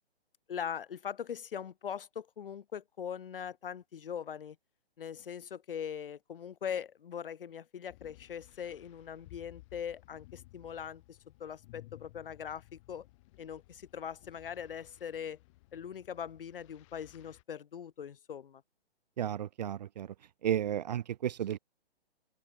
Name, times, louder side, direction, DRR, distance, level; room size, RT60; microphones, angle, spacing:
voice 1, 0.5-4.6 5.0-13.1 13.4-15.4 15.7-18.6, left 8 dB, 55° left, 4.5 m, -41 dB
sound 1, 7.9-17.4, left 21 dB, 30° left, 3.0 m, -57 dB
voice 2, 19.2-20.1 20.4-21.6, right 10 dB, 40° right, 0.8 m, -33 dB
open air
hypercardioid pair, 150°, 32 cm